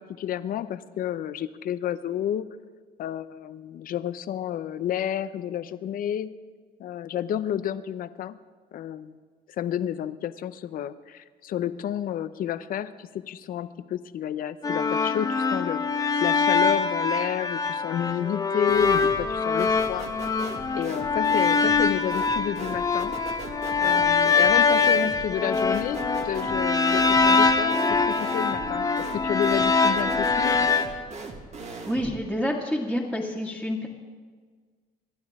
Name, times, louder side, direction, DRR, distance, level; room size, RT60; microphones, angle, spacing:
voice 1, 0.0-2.5 3.0-6.3 6.8-8.4 8.7-9.1 9.6-20.1 20.7-23.2 23.8-28.9 29.1-30.7, left 10 dB, 60° left, 13 dB, 0.7 m, -30 dB
sound 1, 14.6-30.8, left 4 dB, 20° left, 1.2 m, -23 dB
sound 2, 18.7-19.3 19.6-32.2, right 3 dB, 40° right, 2.0 m, -39 dB
voice 2, 31.9-33.9, equal, ahead, -6 dB, 2.0 m, -28 dB
28.0 x 12.0 x 3.7 m, 1.5 s
cardioid pair, 110°, 17 cm